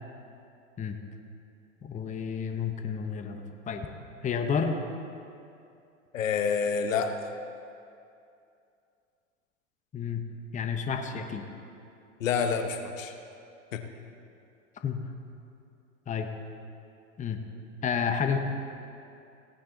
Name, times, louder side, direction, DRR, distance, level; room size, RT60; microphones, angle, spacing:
voice 1, 1.8-3.9 4.2-4.8 9.9-10.2 10.5-11.4 14.8-15.0 16.1-16.3 17.2-17.4 17.8-18.4, left 6 dB, 20° left, 6 dB, 0.9 m, -30 dB
voice 2, 6.1-7.2 12.2-13.1 13.7-13.8, left 6 dB, 80° left, 6 dB, 1.1 m, -28 dB
17.0 x 8.8 x 4.0 m, 2.6 s
hypercardioid pair, 105°, 39 cm